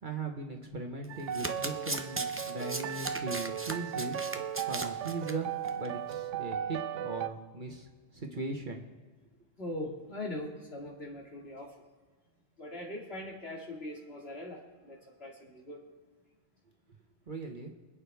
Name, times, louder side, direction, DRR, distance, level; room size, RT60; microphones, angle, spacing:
voice 1, 0.0-4.2 4.7-8.8 17.3-17.7, right 3 dB, 45° right, 3 dB, 1.4 m, -39 dB
Domestic sounds home sounds, 1.0-5.3 5.7-5.9 6.1-6.2, right 2 dB, 15° right, 0.5 m, -38 dB
sound 1, 1.1-7.3, right 9 dB, 85° right, 0.9 m, -36 dB
voice 2, 9.6-11.7 12.6-15.8, left 1 dB, 55° left, -2 dB, 2.6 m, -41 dB
25.0 x 8.6 x 3.5 m, 1.4 s
omnidirectional pair, 1.2 m